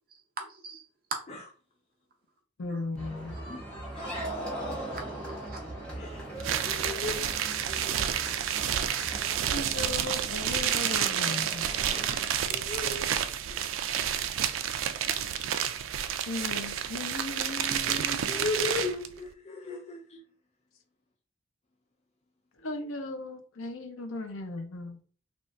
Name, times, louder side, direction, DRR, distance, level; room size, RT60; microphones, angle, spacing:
voice 1, 0.4-0.8 2.7-2.8 3.3-3.6 4.9-5.6 7.7-8.2, right 2 dB, 45° right, 0.7 m, -44 dB
voice 2, 2.6-3.4 9.5-11.7 16.3-18.2 22.6-25.0, left 2 dB, 85° left, 0.7 m, -37 dB
sound 1, 3.0-12.0, right 1 dB, 5° left, 1.2 m, -40 dB
voice 3, 3.9-4.4 6.0-7.2 11.9-13.1 13.5-13.6 13.9-14.1 17.8-20.2, left 3 dB, 35° left, 0.4 m, -37 dB
sound 2, 6.4-19.1, right 9 dB, 85° right, 0.3 m, -30 dB
3.5 x 2.4 x 2.6 m
head